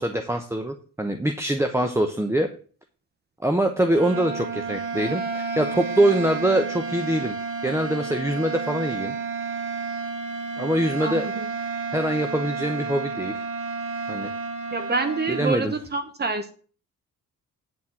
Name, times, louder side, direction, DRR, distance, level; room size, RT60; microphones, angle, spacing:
voice 1, 0.0-2.5 3.4-7.3 7.6-9.2 10.6-11.3 11.9-13.4 14.1-14.3 15.3-15.7, right 1 dB, 10° right, 6 dB, 0.9 m, -24 dB
sound 1, 3.8-15.6, right 4 dB, 85° right, 1.7 m, -31 dB
voice 2, 11.0-11.5 14.7-16.5, right 3 dB, 35° right, 8 dB, 1.0 m, -27 dB
9.5 x 4.2 x 7.2 m, 0.43 s
cardioid pair, 90°, 30 cm